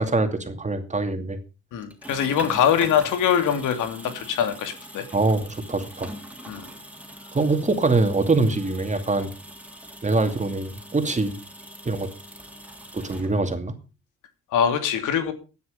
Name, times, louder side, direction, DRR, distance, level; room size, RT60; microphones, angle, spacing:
voice 1, 0.0-1.4 5.1-6.1 7.3-9.3 10.0-11.4 11.9-12.1 12.9-13.7, right 3 dB, 25° right, 7 dB, 2.5 m, -23 dB
voice 2, 1.7-5.1 6.5-6.7 14.5-15.3, left 8 dB, 85° left, 8 dB, 2.6 m, -23 dB
sound 1, 1.8-13.7, equal, 5° right, 3.3 m, -43 dB
15.5 x 9.6 x 5.2 m, 0.33 s
cardioid pair, 90°, 30 cm